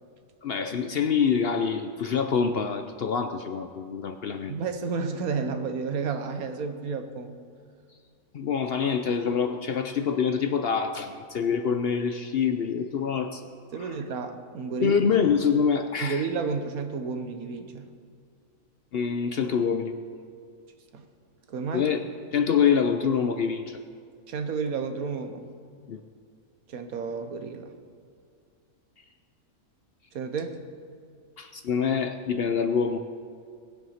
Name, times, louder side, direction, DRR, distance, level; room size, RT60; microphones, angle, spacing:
voice 1, 0.4-4.5 8.3-13.4 13.8-13.9 14.8-16.3 18.9-19.9 21.7-22.0 22.3-23.8 25.9-26.0 31.4-33.0, left 6 dB, 60° left, 8 dB, 0.7 m, -25 dB
voice 2, 4.5-7.4 13.7-15.0 16.0-17.9 20.9-21.1 21.5-21.9 24.3-25.4 26.7-27.7 30.1-30.6, right 5 dB, 80° right, 7 dB, 1.4 m, -31 dB
19.0 x 7.9 x 5.7 m, 2.2 s
omnidirectional pair, 1.5 m